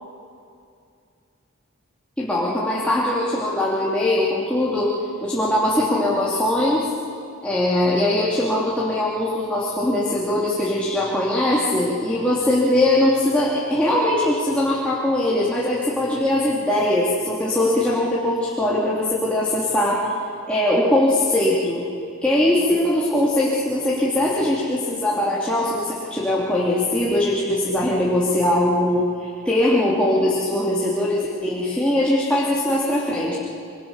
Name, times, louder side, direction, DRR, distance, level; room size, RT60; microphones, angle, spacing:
voice 1, 2.2-4.9 5.2-6.9 7.4-20.0 20.5-21.8 22.2-33.3, left 1 dB, 5° left, -7 dB, 3.0 m, -21 dB
27.5 x 24.5 x 7.3 m, 2.5 s
head